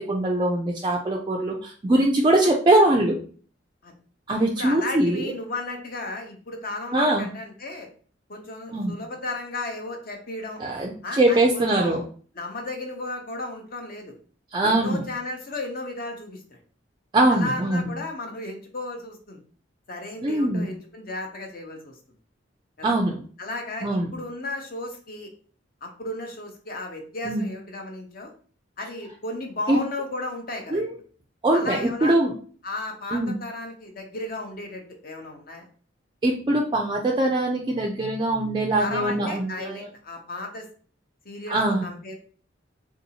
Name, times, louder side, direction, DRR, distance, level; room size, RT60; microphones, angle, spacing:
voice 1, 0.0-3.2 4.3-5.3 6.9-7.3 8.7-9.0 10.6-12.0 14.5-15.1 17.1-17.9 20.2-20.7 22.8-23.2 23.8-24.1 27.3-27.5 29.7-29.8 30.7-30.9 31.4-32.3 33.1-33.4 36.2-39.9 41.5-41.9, right 1 dB, 25° right, 1 dB, 0.3 m, -22 dB
voice 2, 4.6-7.9 8.3-10.6 11.0-12.0 12.3-14.1 14.6-16.6 17.3-19.4 19.9-22.0 22.8-23.0 23.4-25.3 25.8-28.3 28.8-30.8 31.5-32.1 32.6-35.7 38.8-40.7 41.2-42.1, left 2 dB, 50° left, 3 dB, 0.8 m, -34 dB
3.7 x 2.7 x 2.7 m, 0.43 s
head